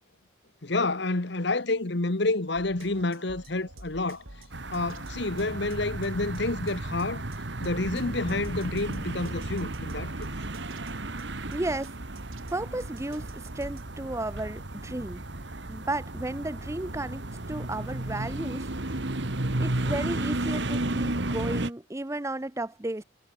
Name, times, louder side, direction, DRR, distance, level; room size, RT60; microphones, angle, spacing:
voice 1, 0.6-4.2 4.7-7.2 7.6-10.3, left 2 dB, 55° left, 1.3 m, -29 dB
sound 1, 2.6-13.9, right 1 dB, 90° right, 5.8 m, -49 dB
sound 2, 4.5-21.7, right 2 dB, 60° right, 1.8 m, -33 dB
voice 2, 11.5-12.0 12.5-15.2 15.7-18.7 19.6-23.0, right 2 dB, 15° right, 0.6 m, -33 dB
head